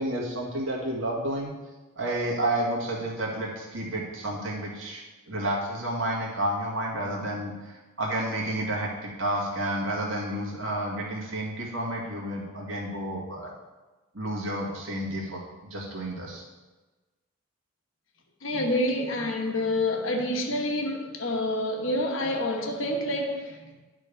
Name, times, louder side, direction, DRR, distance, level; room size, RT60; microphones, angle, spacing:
voice 1, 0.0-1.5 2.0-5.0 5.3-13.5 14.1-15.4 15.7-16.4, right 1 dB, 75° right, -3 dB, 1.9 m, -30 dB
voice 2, 18.4-23.6, left 1 dB, 75° left, 3 dB, 1.1 m, -27 dB
10.5 x 3.8 x 5.1 m, 1.2 s
head